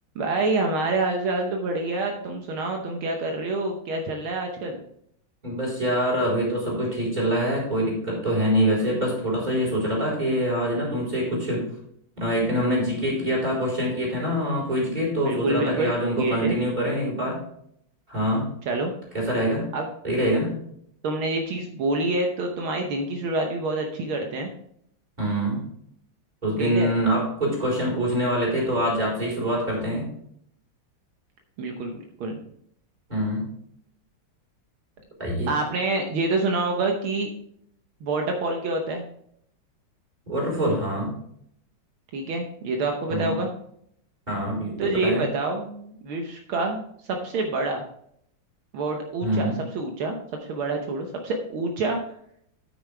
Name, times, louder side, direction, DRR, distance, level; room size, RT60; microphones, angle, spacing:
voice 1, 0.2-4.8 15.2-15.9 16.2-16.6 18.7-18.9 19.7-19.8 21.0-24.5 26.6-26.9 31.6-32.4 35.5-37.3 38.0-39.0 42.1-43.5 44.8-46.8 47.1-47.8 48.7-50.2 50.5-52.0, right 2 dB, 75° right, 3 dB, 1.8 m, -27 dB
voice 2, 5.4-11.7 12.2-17.4 18.1-18.5 19.1-19.7 20.0-20.6 25.2-25.6 26.4-30.1 33.1-33.5 35.2-35.5 40.3-41.2 43.1-43.3 44.3-45.3 49.2-49.6, equal, 20° right, -5 dB, 4.1 m, -25 dB
9.6 x 9.2 x 3.3 m, 0.69 s
omnidirectional pair, 2.3 m